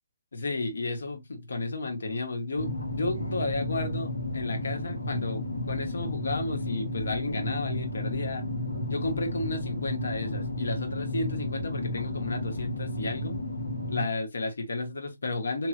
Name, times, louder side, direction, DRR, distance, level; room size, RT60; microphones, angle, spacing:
voice 1, 0.3-8.5 8.9-13.4 13.9-15.7, left 2 dB, 70° left, 0.8 m, -32 dB
sound 1, 2.6-14.1, left 1 dB, 85° left, 1.2 m, -33 dB
2.9 x 2.8 x 2.4 m
figure-of-eight pair, 140°, 0 cm